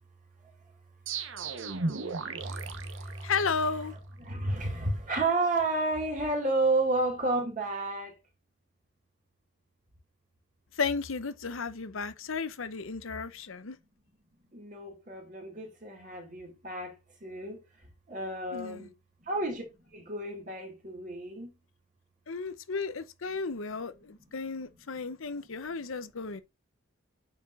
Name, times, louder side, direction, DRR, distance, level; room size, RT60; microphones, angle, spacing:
sound 1, 1.1-3.8, right 3 dB, 70° right, 1.1 m, -35 dB
voice 1, 2.4-3.3 4.2-8.1 14.5-16.9 17.2-17.6 18.1-18.9 19.2-19.7 19.9-21.5, right 2 dB, 40° right, 2.2 m, -31 dB
voice 2, 3.2-3.9 10.7-13.8 18.5-18.9 22.3-26.4, left 5 dB, 80° left, 0.8 m, -33 dB
8.8 x 4.8 x 2.5 m
head